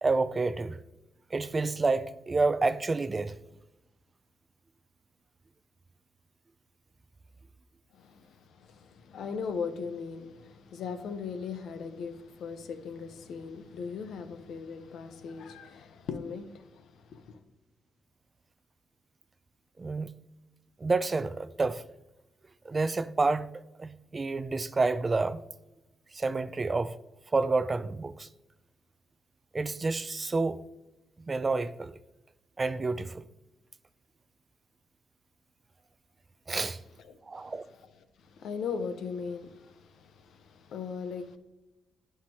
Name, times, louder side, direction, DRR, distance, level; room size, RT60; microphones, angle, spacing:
voice 1, 0.0-0.8 1.3-3.4 19.8-20.1 20.8-21.8 22.7-23.5 23.8-25.4 26.1-27.0 27.3-28.3 29.5-30.6 31.2-32.0 32.6-33.2 36.5-36.8 37.3-37.6, right 3 dB, 25° right, 0.3 m, -29 dB
voice 2, 8.6-17.4 37.4-37.5 38.4-41.4, left 5 dB, 75° left, 0.8 m, -38 dB
10.0 x 5.7 x 3.0 m
cardioid pair, 125°, 0 cm